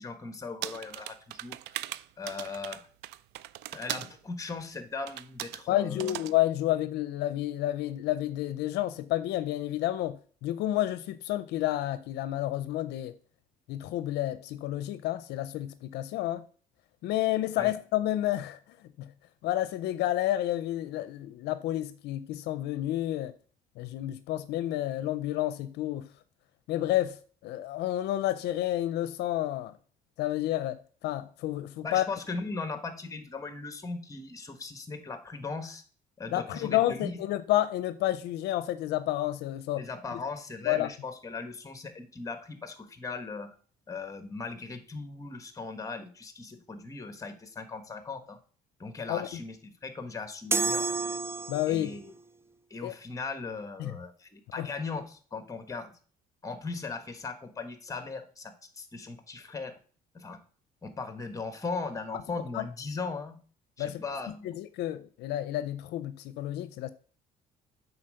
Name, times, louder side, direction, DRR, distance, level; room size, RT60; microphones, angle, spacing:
voice 1, 0.0-1.6 2.2-2.9 3.7-6.1 17.6-17.7 31.8-35.8 36.2-37.2 39.8-43.5 43.9-48.4 48.8-50.9 51.7-52.1 52.7-55.9 56.4-59.8 60.1-60.4 60.8-63.4 63.8-64.5, left 4 dB, 20° left, 1.3 m, -38 dB
sound 1, 0.6-4.1 5.1-5.6 6.0-6.3, right 15 dB, 85° right, 0.4 m, -39 dB
voice 2, 5.7-13.1 13.7-16.4 17.0-18.6 19.0-19.1 19.4-23.3 23.8-26.1 26.7-27.2 27.4-29.7 30.2-30.8 31.0-32.0 36.3-39.8 40.6-40.9 49.1-49.3 51.5-51.9 52.8-52.9 53.8-53.9 54.6-54.7 62.5-62.6 63.8-64.0 64.4-66.9, left 14 dB, 80° left, 0.5 m, -30 dB
sound 2, 50.5-52.0, right 3 dB, 15° right, 0.4 m, -30 dB
8.7 x 4.1 x 6.4 m
cardioid pair, 110°, 17 cm